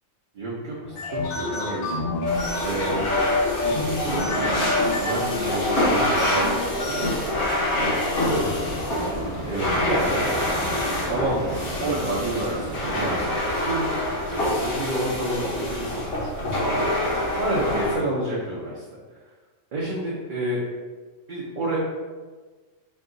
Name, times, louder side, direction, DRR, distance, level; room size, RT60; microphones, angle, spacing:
voice 1, 0.3-2.1 2.6-3.0 3.6-7.5 7.8-8.9 9.4-18.8 19.7-20.6 21.3-21.8, right 1 dB, 50° right, -6 dB, 0.6 m, -30 dB
sound 1, 0.8-9.1, left 2 dB, 70° left, 0.5 m, -29 dB
sound 2, 2.3-18.0, left 1 dB, 50° left, 1.2 m, -26 dB
Boat Water vehicle, 8.2-13.4, right 1 dB, 10° left, 0.9 m, -34 dB
4.4 x 2.3 x 3.7 m, 1.4 s
omnidirectional pair, 1.5 m